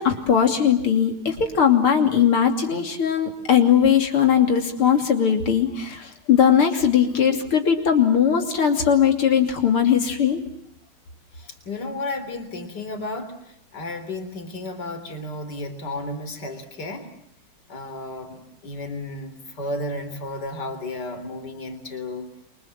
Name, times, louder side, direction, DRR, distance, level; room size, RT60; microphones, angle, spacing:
voice 1, 0.0-10.4, left 8 dB, 85° left, 4 dB, 3.8 m, -19 dB
voice 2, 11.3-13.4 13.7-17.1 17.7-22.3, left 2 dB, 50° left, 8 dB, 4.1 m, -33 dB
29.0 x 24.5 x 7.4 m, 0.75 s
omnidirectional pair, 2.3 m